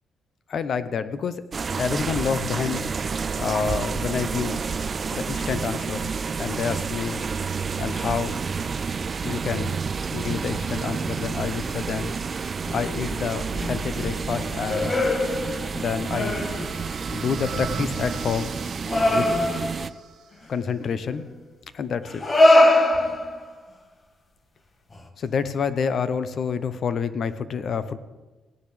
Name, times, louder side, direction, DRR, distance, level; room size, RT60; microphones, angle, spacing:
voice 1, 0.5-1.4 1.8-2.8 3.4-4.6 5.1-6.1 6.4-7.2 7.8-8.4 9.2-9.8 10.1-12.2 12.7-15.1 15.7-16.5 17.1-18.5 19.0-19.4 20.5-21.2 21.7-22.2 25.2-28.0, left 6 dB, 55° left, 12 dB, 0.8 m, -28 dB
sound 1, 1.5-19.9, right 5 dB, 40° right, 0.4 m, -30 dB
sound 2, 12.6-13.2 13.5-15.9 16.1-16.9 17.3-17.7 18.9-19.9 21.0-21.2 22.1-23.6 24.9-25.0, left 1 dB, 30° left, 1.4 m, -22 dB
sound 3, 15.3-20.3, right 6 dB, 70° right, 1.4 m, -39 dB
17.5 x 10.0 x 3.4 m, 1.2 s
cardioid pair, 90°, 0 cm